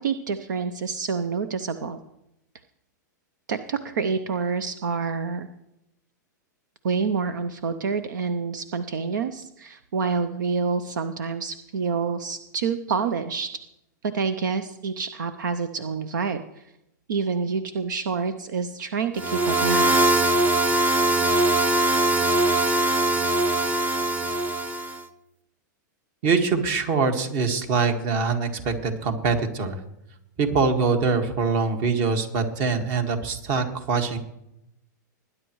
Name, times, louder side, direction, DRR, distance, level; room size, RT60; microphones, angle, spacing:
voice 1, 0.0-2.0 3.5-5.5 6.8-13.5 14.1-16.6 17.1-20.0, right 5 dB, 80° right, 11 dB, 0.7 m, -27 dB
sound 1, 19.2-25.0, right 1 dB, 15° right, 0.9 m, -21 dB
voice 2, 26.2-29.8 30.4-34.2, right 4 dB, 45° right, 6 dB, 1.8 m, -24 dB
20.0 x 10.0 x 3.1 m, 0.85 s
hypercardioid pair, 120°, 10 cm